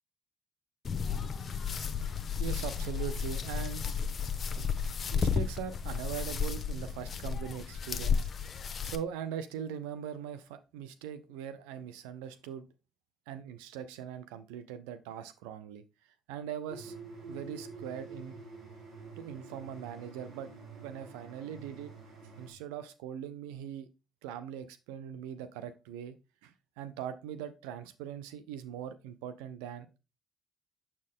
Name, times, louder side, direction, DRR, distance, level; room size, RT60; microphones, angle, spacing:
sound 1, 0.8-8.9, left 6 dB, 45° left, 0.8 m, -33 dB
voice 1, 2.4-3.8 5.1-8.3 8.8-12.6 13.3-15.8 16.3-16.9 17.3-18.3 19.2-20.5 20.8-21.9 22.4-23.9 24.2-26.1 26.4-30.0, right 9 dB, 90° right, 12 dB, 0.4 m, -41 dB
sound 2, 16.7-22.5, right 3 dB, 75° right, 3.0 m, -48 dB
7.1 x 4.4 x 3.6 m, 0.28 s
supercardioid pair, 60°, 0 cm